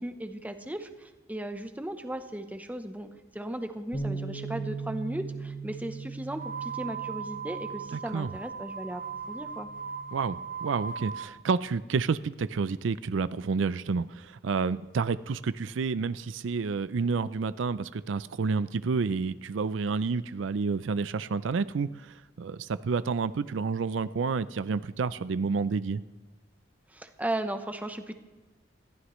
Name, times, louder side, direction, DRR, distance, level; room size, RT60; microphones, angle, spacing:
voice 1, 0.0-9.0 9.3-9.7 26.9-28.1, right 1 dB, 10° right, 7 dB, 0.8 m, -36 dB
Bass guitar, 3.9-10.2, right 4 dB, 75° left, 4.5 m, -39 dB
sound 1, 6.3-11.3, right 6 dB, 45° right, 0.7 m, -38 dB
voice 2, 7.9-8.3 10.1-26.0, right 5 dB, 80° right, 15 dB, 0.4 m, -29 dB
20.5 x 14.5 x 3.1 m, 1.2 s
head